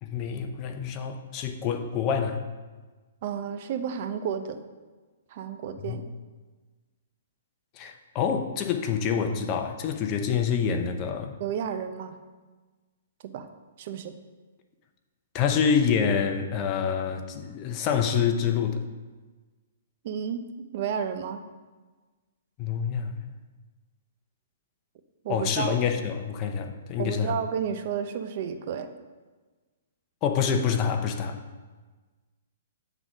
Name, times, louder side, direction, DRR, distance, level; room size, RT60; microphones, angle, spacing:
voice 1, 0.0-2.4 5.8-6.0 7.8-11.3 15.3-18.8 22.6-23.1 25.3-27.3 30.2-31.4, left 7 dB, 30° left, 6 dB, 0.7 m, -27 dB
voice 2, 3.2-4.6 5.3-6.1 11.4-12.2 13.3-13.5 13.8-14.1 20.0-20.4 20.7-21.4 25.2-25.8 27.0-28.9, right 8 dB, 45° right, 8 dB, 0.6 m, -31 dB
8.1 x 3.9 x 6.0 m, 1.3 s
hypercardioid pair, 150°, 0 cm